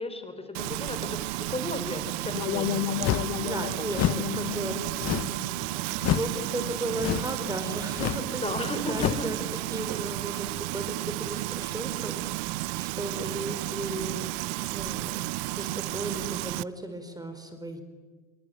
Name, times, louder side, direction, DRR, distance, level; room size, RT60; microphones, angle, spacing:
voice 1, 0.0-3.3 8.4-9.3 10.0-10.1 13.3-13.7, left 2 dB, 15° left, 8 dB, 4.4 m, -35 dB
Frying (food), 0.5-16.6, right 21 dB, 55° right, 0.8 m, -33 dB
sound 1, 2.3-7.3, left 16 dB, 60° left, 1.2 m, -35 dB
sound 2, 3.0-3.4 3.9-4.3 5.0-5.4 6.0-6.3 7.0-7.4 7.9-8.3 8.9-9.3, left 14 dB, 40° left, 1.0 m, -28 dB
voice 2, 3.4-5.2 6.1-9.4 9.7-14.3 14.7-15.2 15.5-17.8, right 1 dB, 10° right, 8 dB, 4.3 m, -36 dB
27.0 x 24.0 x 9.2 m, 1.4 s
hypercardioid pair, 80°, 41 cm